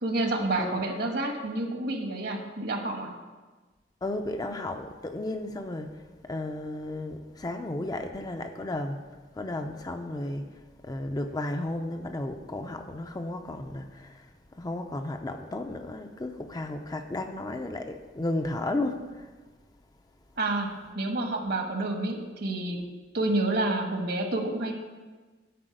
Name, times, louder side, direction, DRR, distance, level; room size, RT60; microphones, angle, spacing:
voice 1, 0.0-3.1 20.4-20.7 20.9-22.8 23.1-24.7, right 2 dB, 60° right, 3 dB, 1.4 m, -29 dB
voice 2, 4.0-5.9 6.2-9.0 9.4-10.5 10.8-14.2 14.6-19.3, left 2 dB, 20° left, 5 dB, 0.5 m, -33 dB
10.0 x 4.4 x 7.7 m, 1.3 s
head